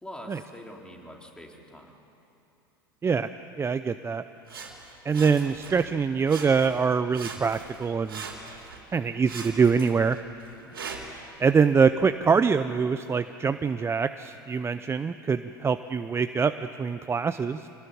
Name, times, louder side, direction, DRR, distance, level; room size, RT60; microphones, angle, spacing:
voice 1, 0.0-1.9 10.6-10.9, left 1 dB, 5° left, 0 dB, 3.9 m, -44 dB
voice 2, 3.6-4.2 5.0-8.2 8.9-10.2 11.4-16.5 16.8-17.6, right 5 dB, 20° right, 11 dB, 0.7 m, -24 dB
Sawing, 4.5-5.9 6.2-6.9 7.1-8.8 9.2-11.2 11.9-12.0, right 5 dB, 80° right, 3.4 m, -41 dB
25.5 x 19.0 x 9.5 m, 2.9 s
hypercardioid pair, 80°, 12 cm